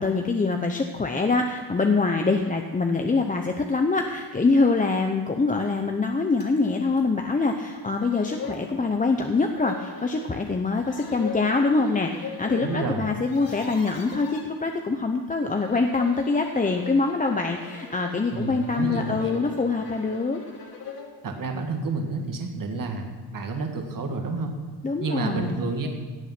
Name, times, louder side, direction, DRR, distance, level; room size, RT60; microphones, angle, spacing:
voice 1, 0.0-20.4 24.8-25.6, left 3 dB, 15° left, 4 dB, 0.7 m, -24 dB
sound 1, 6.4-6.5 7.0-7.1 7.7-7.8 8.0-8.7 9.5-10.3 10.8-12.9 13.1-14.4 15.4-21.1, left 5 dB, 45° left, 2.9 m, -40 dB
voice 2, 12.6-13.1 18.3-19.4 21.2-24.5 25.0-25.9, right 3 dB, 40° right, 3 dB, 2.1 m, -30 dB
17.0 x 8.9 x 6.0 m, 1.5 s
cardioid pair, 130°, 49 cm